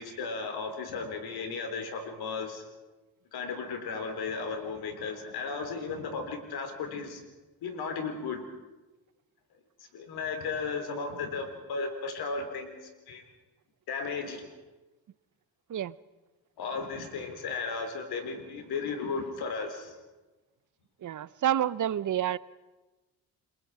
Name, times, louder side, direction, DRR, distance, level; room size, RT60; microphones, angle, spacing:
voice 1, 0.0-2.6 3.3-7.2 7.6-8.4 9.9-12.8 13.1-13.2 13.9-14.5 16.6-20.0, left 4 dB, 90° left, 6 dB, 3.8 m, -35 dB
voice 2, 21.0-22.4, right 11 dB, 55° right, 18 dB, 0.7 m, -28 dB
29.0 x 22.0 x 4.9 m, 1.1 s
cardioid pair, 90°, 37 cm